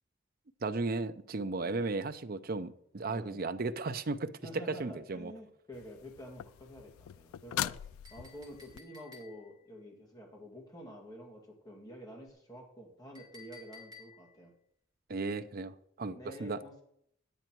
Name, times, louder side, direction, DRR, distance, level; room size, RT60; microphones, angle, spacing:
voice 1, 0.6-4.3 4.7-5.3 15.1-16.6, right 3 dB, 45° right, 0.6 m, -35 dB
voice 2, 1.6-1.9 3.1-3.4 4.4-14.5 16.1-16.8, equal, 20° left, 2.0 m, -49 dB
sound 1, 5.7-8.8 12.3-12.4, left 12 dB, 90° left, 0.3 m, -41 dB
Chink clink, 8.0-9.6 13.2-14.4, left 5 dB, 20° right, 2.4 m, -55 dB
10.5 x 9.2 x 4.5 m
head